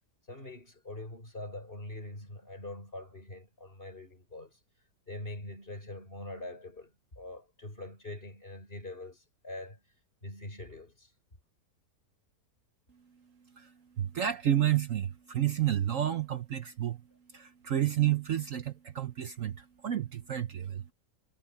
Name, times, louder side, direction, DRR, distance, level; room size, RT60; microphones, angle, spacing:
voice 1, 0.3-4.6 5.1-9.8 10.2-11.1, left 2 dB, 35° left, 5.5 m, -43 dB
voice 2, 13.5-17.0 17.3-20.9, right 11 dB, 60° right, 1.1 m, -30 dB
omnidirectional pair, 1.7 m